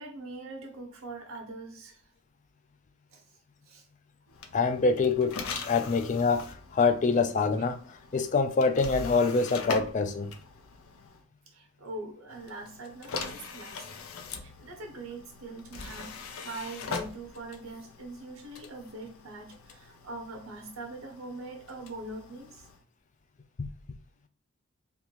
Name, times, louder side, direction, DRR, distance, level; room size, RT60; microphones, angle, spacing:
voice 1, 0.0-2.0 3.1-3.2 3.7-3.8 11.5-13.8 14.4-22.7, right 2 dB, 75° right, 1.1 m, -42 dB
sound 1, 4.3-11.2 12.3-22.8, left 4 dB, 85° left, 0.5 m, -42 dB
voice 2, 4.5-10.3 23.6-23.7, left 4 dB, 35° left, 0.3 m, -26 dB
3.5 x 2.6 x 2.9 m
head